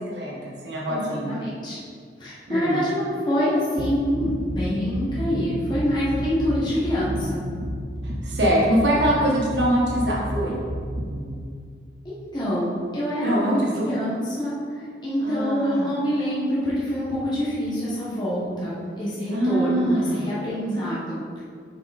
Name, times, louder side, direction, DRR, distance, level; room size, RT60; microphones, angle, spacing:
voice 1, 0.1-1.4 2.5-2.8 8.2-10.6 13.2-13.9 15.2-15.9 19.3-20.3, right 1 dB, 75° right, -5 dB, 1.6 m, -23 dB
voice 2, 0.9-1.8 2.2-7.4 12.0-21.4, equal, 25° left, -8 dB, 1.2 m, -26 dB
sound 1, 3.8-11.3, right 1 dB, 45° right, 0.8 m, -30 dB
6.5 x 4.9 x 4.2 m, 2.2 s
head